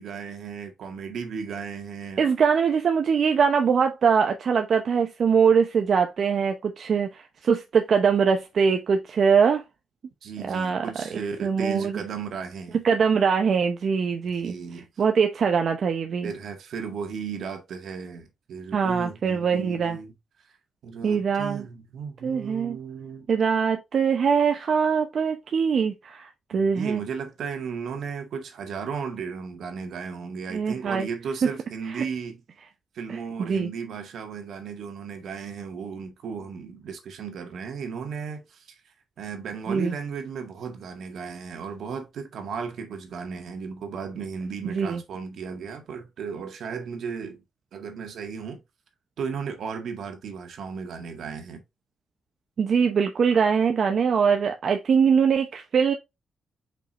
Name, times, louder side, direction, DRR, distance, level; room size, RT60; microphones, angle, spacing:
voice 1, 0.0-2.2 10.2-12.8 14.4-14.9 16.2-20.1 20.8-23.3 26.5-32.4 32.9-38.8 39.2-47.4 47.7-48.6 49.2-51.6, right 6 dB, 80° right, 1.8 m, -35 dB
voice 2, 2.2-9.6 10.5-10.8 11.4-12.0 12.8-14.5 15.0-16.3 18.7-20.0 21.0-21.7 22.2-22.8 23.3-27.0 30.5-31.1 31.9-32.0 33.1-33.7 39.7-39.9 44.6-45.0 52.6-55.9, right 6 dB, 55° right, 0.8 m, -22 dB
7.2 x 5.4 x 2.5 m
wide cardioid pair, 135°, 0 cm